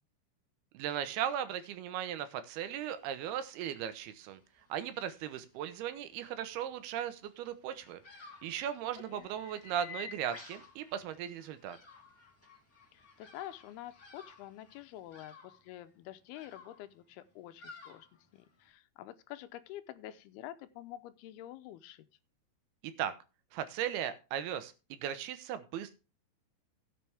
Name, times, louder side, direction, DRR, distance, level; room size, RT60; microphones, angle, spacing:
voice 1, 0.7-4.4 4.7-8.0 8.4-11.8 23.0-23.1 23.5-25.9, right 10 dB, 85° right, 11 dB, 2.9 m, -37 dB
sound 1, 2.6-15.2, left 5 dB, 5° left, 1.3 m, -57 dB
Bird vocalization bird call bird song, 7.7-18.7, left 3 dB, 30° left, 2.0 m, -57 dB
voice 2, 12.9-18.1 18.3-22.1, left 13 dB, 85° left, 11 dB, 2.7 m, -48 dB
16.5 x 6.8 x 3.4 m, 0.31 s
omnidirectional pair, 4.5 m